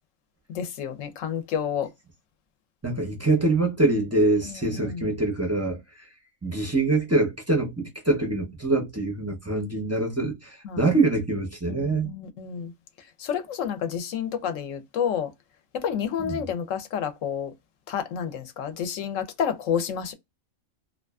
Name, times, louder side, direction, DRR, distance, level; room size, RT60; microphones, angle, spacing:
voice 1, 0.5-1.9 4.4-5.1 10.6-10.9 11.7-12.7 13.2-15.3 15.7-17.5 17.9-20.1, left 8 dB, 75° left, 0.9 m, -30 dB
voice 2, 2.8-5.8 6.4-12.1 16.2-16.4, right 2 dB, 25° right, 0.3 m, -24 dB
2.5 x 2.3 x 2.2 m
omnidirectional pair, 1.4 m